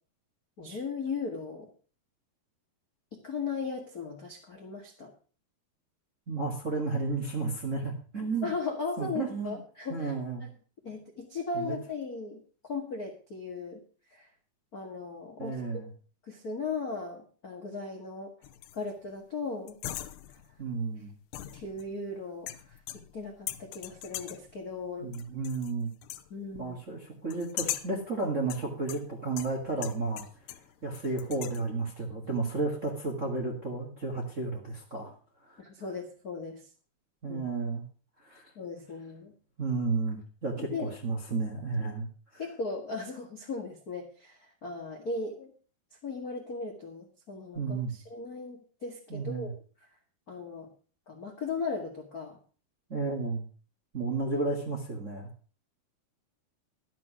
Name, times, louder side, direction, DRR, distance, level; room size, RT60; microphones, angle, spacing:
voice 1, 0.6-1.7 3.2-5.1 8.4-10.1 10.4-10.5 10.8-13.8 14.1-14.3 14.7-15.6 16.2-18.3 18.7-19.8 21.5-22.8 23.1-25.1 26.3-26.8 35.6-36.6 37.3-37.4 38.5-39.3 40.7-40.9 42.4-45.5 46.0-49.5 50.3-50.7 51.1-52.4 54.3-54.4, left 4 dB, 55° left, 2 dB, 0.9 m, -37 dB
voice 2, 6.3-8.5 9.0-9.6 9.9-10.4 11.5-11.8 15.4-15.9 20.6-21.1 25.0-25.9 26.6-30.3 30.8-35.1 35.4-35.6 37.2-37.8 38.2-38.5 39.6-42.1 42.3-42.4 47.5-47.9 49.1-49.5 52.9-53.4 53.9-55.3, right 3 dB, 35° right, 0 dB, 1.3 m, -32 dB
sound 1, 18.4-18.9 19.7-20.5 21.3-22.1 22.5-23.2 23.5-24.5 25.1-25.7 26.0-26.3 27.3-28.0 28.5-30.7 30.9-31.6, left 13 dB, 85° left, 2.8 m, -40 dB
12.0 x 7.6 x 6.1 m, 0.39 s
omnidirectional pair, 4.7 m